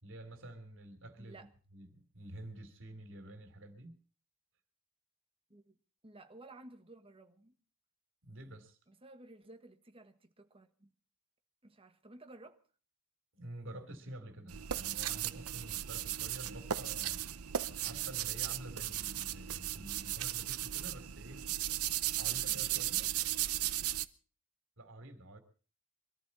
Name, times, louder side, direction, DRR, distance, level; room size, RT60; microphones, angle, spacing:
voice 1, 0.0-1.4 1.7-4.0 8.2-8.8 13.3-17.2 17.8-21.4 22.2-23.0 24.8-25.4, right 1 dB, 60° right, 3.1 m, -49 dB
voice 2, 1.2-1.5 5.5-5.8 6.0-7.6 8.9-10.9 11.6-12.6 22.5-23.1, right 2 dB, 25° right, 1.6 m, -55 dB
sound 1, 14.5-24.1, right 12 dB, 80° right, 0.8 m, -36 dB
23.5 x 14.0 x 4.2 m
head